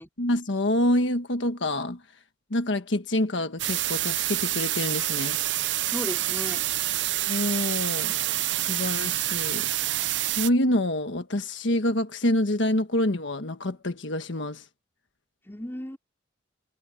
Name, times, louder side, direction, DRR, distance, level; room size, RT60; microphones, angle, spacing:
voice 1, 0.2-2.0 2.5-5.4 7.3-8.1 8.5-9.7 10.2-14.6, left 1 dB, 75° left, 1.4 m, -26 dB
sound 1, 3.6-10.5, right 14 dB, 70° right, 0.7 m, -27 dB
voice 2, 5.9-6.6 15.5-16.0, equal, 10° left, 4.1 m, -35 dB
head